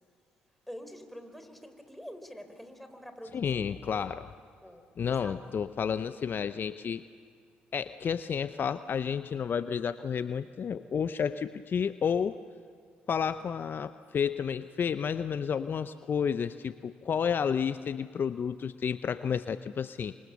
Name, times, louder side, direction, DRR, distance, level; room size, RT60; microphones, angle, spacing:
voice 1, 0.7-3.4 3.9-4.1 4.6-4.8 5.2-5.4, equal, 5° left, 7 dB, 4.2 m, -46 dB
voice 2, 3.3-4.2 5.0-7.0 7.7-12.4 13.1-20.1, left 7 dB, 50° left, 13 dB, 0.7 m, -31 dB
28.0 x 25.0 x 7.0 m, 2.2 s
hypercardioid pair, 50°, 5 cm